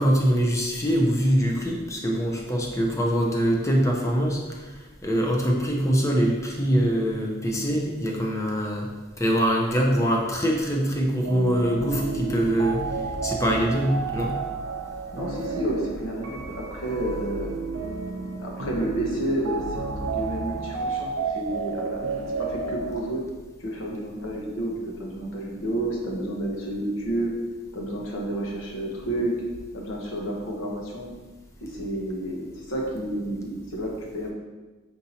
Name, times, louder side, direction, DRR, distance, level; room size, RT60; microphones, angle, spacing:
voice 1, 0.0-8.9 9.2-12.8 13.2-14.3, equal, 15° left, 0 dB, 0.6 m, -23 dB
sound 1, 11.3-23.0, right 4 dB, 80° right, 0.6 m, -31 dB
voice 2, 15.1-17.5 18.4-22.1 22.4-23.2 23.6-24.7 25.0-27.3 27.7-29.3 29.7-31.1 31.6-34.3, right 1 dB, 80° left, -2 dB, 0.9 m, -30 dB
5.6 x 2.6 x 2.8 m, 1.2 s
head